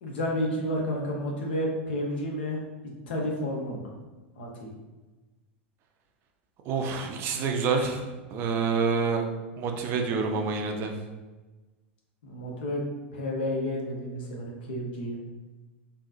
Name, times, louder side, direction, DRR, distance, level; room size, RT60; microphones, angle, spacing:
voice 1, 0.0-2.6 3.1-3.9 4.4-4.7 12.2-12.8 13.1-15.2, left 1 dB, 60° left, -1 dB, 0.8 m, -31 dB
voice 2, 6.7-9.2 9.6-10.9, right 5 dB, 35° right, 3 dB, 0.5 m, -27 dB
3.7 x 2.7 x 2.5 m, 1.2 s
figure-of-eight pair, 85°, 6 cm